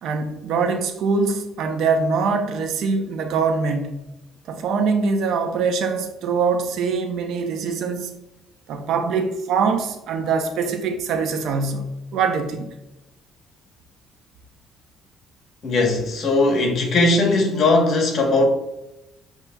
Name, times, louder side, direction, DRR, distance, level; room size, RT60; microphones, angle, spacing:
voice 1, 0.0-4.0 4.5-8.1 8.7-12.7, right 5 dB, 70° right, 6 dB, 0.6 m, -23 dB
voice 2, 15.6-18.4, left 2 dB, 50° left, 2 dB, 1.1 m, -19 dB
6.8 x 3.0 x 2.3 m, 0.92 s
cardioid pair, 105°, 0 cm